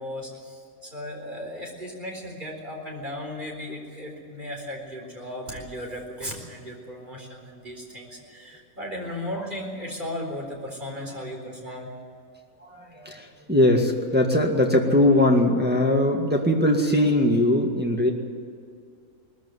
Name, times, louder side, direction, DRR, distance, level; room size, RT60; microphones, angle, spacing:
voice 1, 0.0-11.9, left 1 dB, 35° right, 0 dB, 4.4 m, -36 dB
voice 2, 12.6-18.1, left 1 dB, 5° right, 1 dB, 1.9 m, -21 dB
20.0 x 14.5 x 9.6 m, 2.4 s
omnidirectional pair, 1.5 m